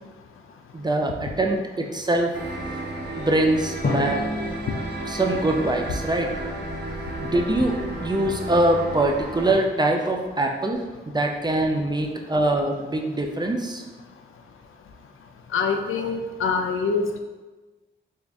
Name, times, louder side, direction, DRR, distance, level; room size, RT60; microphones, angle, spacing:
voice 1, 0.7-2.3 3.2-4.2 5.1-6.4 7.2-7.8 8.0-13.8, right 1 dB, 20° right, 2 dB, 0.5 m, -23 dB
sound 1, 2.3-9.5, right 2 dB, 50° right, 1.0 m, -33 dB
Drum, 3.8-6.7, left 2 dB, 45° left, 0.7 m, -31 dB
voice 2, 15.5-17.2, left 5 dB, 80° left, 5 dB, 0.4 m, -25 dB
3.6 x 2.5 x 3.4 m, 1.2 s
cardioid pair, 50°, 21 cm